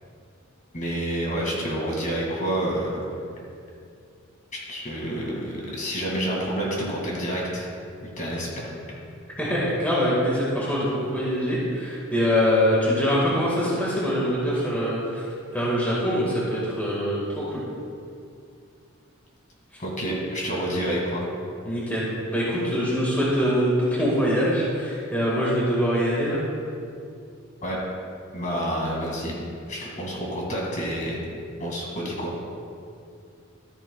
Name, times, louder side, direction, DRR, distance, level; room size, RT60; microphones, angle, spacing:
voice 1, 0.7-3.0 4.5-7.7 8.0-8.7 19.8-21.3 27.6-27.8 28.3-29.4 29.7-31.2 31.6-32.3, right 1 dB, 35° left, -3 dB, 2.1 m, -28 dB
voice 2, 9.4-15.2 15.5-17.6 21.6-26.4, equal, 10° left, -7 dB, 1.7 m, -24 dB
13.0 x 10.5 x 2.3 m, 2.4 s
head